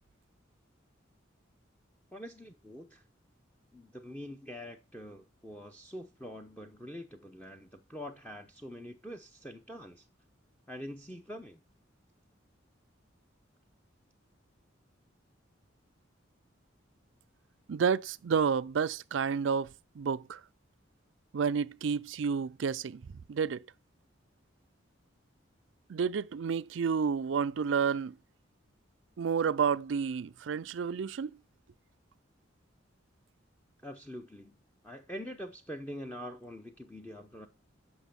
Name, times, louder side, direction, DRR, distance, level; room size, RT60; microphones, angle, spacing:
voice 1, 2.1-3.0 3.7-10.0 10.7-11.6 33.8-34.6 34.8-37.5, equal, 5° left, 0.7 m, -44 dB
voice 2, 17.7-19.7 20.0-20.4 21.3-23.0 23.3-23.6 25.9-28.1 29.2-31.3, right 6 dB, 70° right, 0.4 m, -30 dB
8.1 x 6.0 x 6.8 m
head